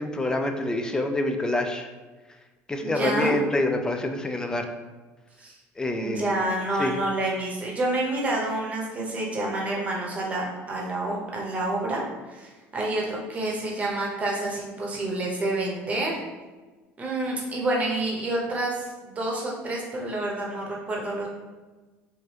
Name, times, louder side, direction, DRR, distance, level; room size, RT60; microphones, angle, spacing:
voice 1, 0.0-1.9 2.7-4.7 5.8-6.3 6.8-7.0, left 2 dB, 15° left, 5 dB, 0.3 m, -26 dB
voice 2, 2.8-3.4 5.4-5.5 6.0-16.2 17.0-21.3, right 2 dB, 25° right, -2 dB, 0.8 m, -28 dB
3.2 x 2.5 x 2.9 m, 1.2 s
cardioid pair, 115°, 6 cm